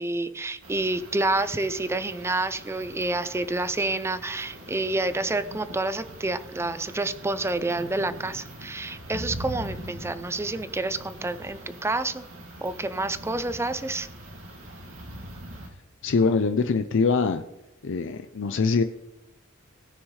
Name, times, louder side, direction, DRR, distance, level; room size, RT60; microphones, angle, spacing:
voice 1, 0.0-12.2 12.6-14.1, right 2 dB, 15° right, 12 dB, 0.5 m, -28 dB
sound 1, 0.6-15.7, right 1 dB, 80° right, 2.5 m, -42 dB
voice 2, 16.0-17.4 17.8-18.8, left 4 dB, 65° left, 8 dB, 0.5 m, -23 dB
18.0 x 6.3 x 3.2 m, 0.92 s
head